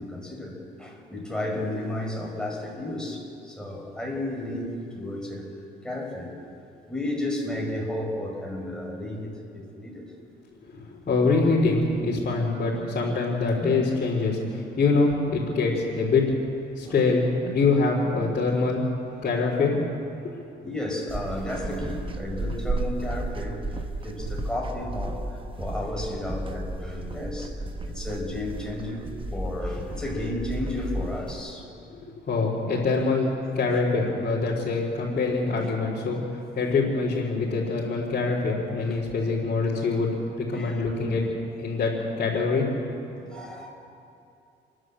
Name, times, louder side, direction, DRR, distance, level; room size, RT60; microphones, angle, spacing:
voice 1, 0.0-5.5 5.8-6.3 6.9-10.0 13.6-13.7 16.8-16.9 20.2-20.4 20.6-23.6 24.0-31.8 33.7-33.8 38.8-38.9 40.5-40.8 43.3-43.7, left 1 dB, 5° left, -1 dB, 5.8 m, -33 dB
voice 2, 10.7-16.2 16.8-18.9 19.2-19.8 20.2-20.7 32.3-41.2 41.6-42.7, left 3 dB, 45° left, -7 dB, 4.1 m, -24 dB
sound 1, 21.1-31.4, right 2 dB, 25° right, 1.2 m, -33 dB
29.5 x 11.5 x 7.7 m, 2.6 s
cardioid pair, 90°, 20 cm